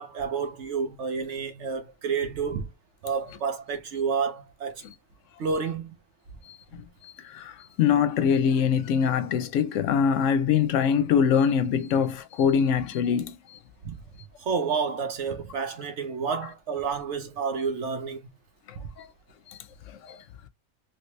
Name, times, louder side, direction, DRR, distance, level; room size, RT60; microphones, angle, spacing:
voice 1, 0.0-2.7 3.0-4.8 5.4-6.0 13.8-14.0 14.4-18.3, right 5 dB, 70° right, 1.0 m, -30 dB
voice 2, 6.5-13.6 19.0-19.1 19.5-19.6 20.0-20.2, left 7 dB, 80° left, 0.9 m, -24 dB
3.1 x 2.9 x 3.1 m
omnidirectional pair, 1.3 m